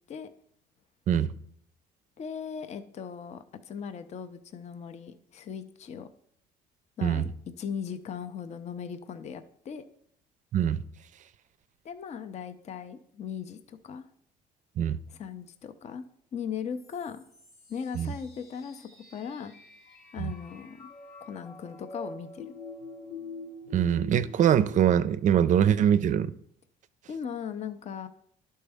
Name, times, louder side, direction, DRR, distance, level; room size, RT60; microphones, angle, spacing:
voice 1, 2.2-6.1 7.0-7.3 7.6-9.8 11.8-14.1 15.1-16.0 16.3-17.2 17.7-19.5 20.1-20.9 21.2-22.5 27.1-28.1, left 7 dB, 40° left, 0.5 m, -38 dB
sound 1, 16.8-24.9, left 3 dB, 70° left, 1.3 m, -46 dB
voice 2, 23.7-26.3, right 9 dB, 50° right, 0.4 m, -23 dB
11.0 x 4.4 x 3.5 m
cardioid pair, 110°, 17 cm